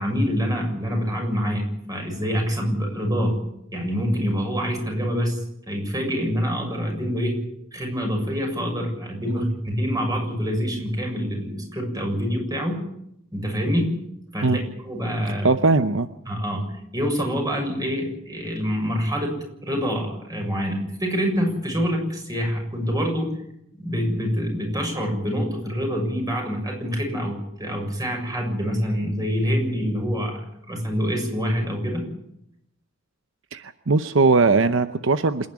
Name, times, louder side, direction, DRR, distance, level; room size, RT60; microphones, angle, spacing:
voice 1, 0.0-1.6 1.9-3.3 3.7-5.4 5.7-7.4 7.7-12.8 13.3-13.9 14.3-14.6 14.9-15.5 16.3-16.6 16.9-19.4 19.6-23.3 23.7-32.0, equal, 20° right, 2 dB, 7.0 m, -26 dB
voice 2, 15.4-16.1 33.5-35.5, right 3 dB, 70° right, 11 dB, 0.8 m, -19 dB
27.5 x 10.5 x 9.6 m, 0.78 s
head